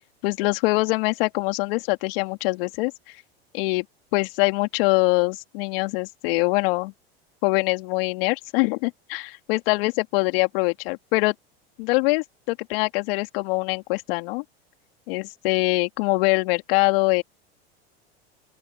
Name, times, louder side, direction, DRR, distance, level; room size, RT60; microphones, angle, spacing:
voice 1, 0.2-2.9 3.5-3.8 4.1-6.9 7.4-11.3 11.8-14.4 15.1-17.2, left 25 dB, 65° left, 3.0 m, -23 dB
open air
hypercardioid pair, 95°, 31 cm